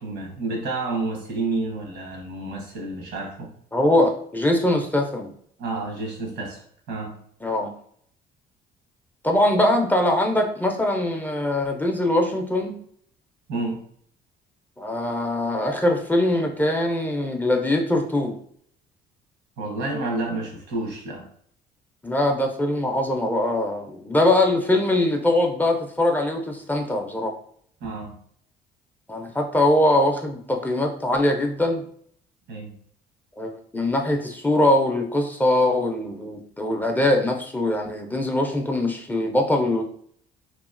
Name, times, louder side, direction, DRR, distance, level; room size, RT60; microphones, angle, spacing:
voice 1, 0.0-3.5 5.6-6.6 6.9-7.2 13.5-13.8 19.6-21.3 27.8-28.2 32.5-32.7, right 3 dB, 85° right, 0 dB, 1.0 m, -29 dB
voice 2, 3.7-5.3 7.4-7.7 9.2-12.8 14.8-18.3 22.0-27.3 29.1-31.8 33.4-39.8, left 1 dB, 10° left, 2 dB, 0.4 m, -22 dB
2.9 x 2.3 x 2.4 m, 0.63 s
cardioid pair, 110°, 17 cm